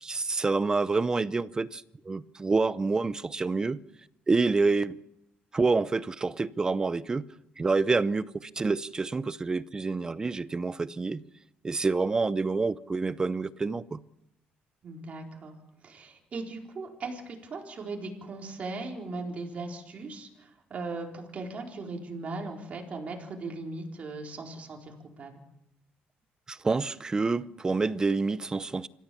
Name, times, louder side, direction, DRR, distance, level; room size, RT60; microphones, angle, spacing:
voice 1, 0.0-3.8 4.3-5.0 5.5-7.3 7.6-11.2 11.6-14.0 26.5-28.9, right 3 dB, 20° right, 0.7 m, -27 dB
voice 2, 14.8-15.5 15.8-25.3, right 3 dB, 40° right, 4.3 m, -38 dB
26.5 x 15.0 x 7.0 m
cardioid pair, 135°, 4 cm